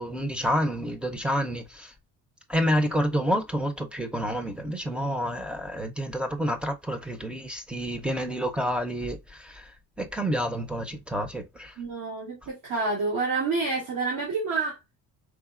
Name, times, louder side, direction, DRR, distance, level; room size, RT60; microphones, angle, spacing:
voice 1, 0.0-1.9 2.5-9.7 10.0-11.7, equal, 5° right, 0.6 m, -29 dB
voice 2, 11.8-14.8, right 3 dB, 75° right, 2.4 m, -28 dB
4.8 x 3.8 x 2.4 m
cardioid pair, 145°, 32 cm